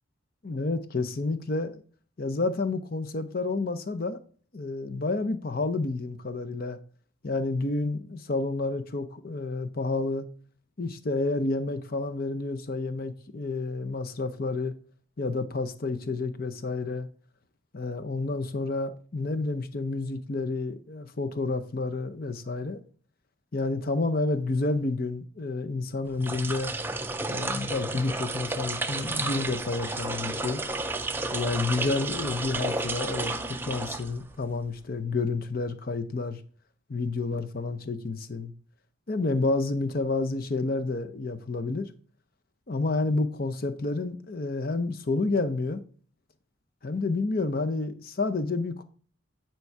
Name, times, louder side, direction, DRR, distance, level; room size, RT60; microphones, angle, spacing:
voice 1, 0.4-1.8 2.2-4.2 4.5-6.8 7.2-10.3 10.8-14.7 15.2-17.1 17.7-22.8 23.5-26.7 27.3-30.6 31.3-36.4 36.9-38.5 39.1-41.9 42.7-45.8 46.8-48.8, left 3 dB, 45° left, 0.7 m, -29 dB
sound 1, 26.1-34.5, right 2 dB, 10° right, 0.4 m, -32 dB
9.7 x 4.6 x 4.6 m
head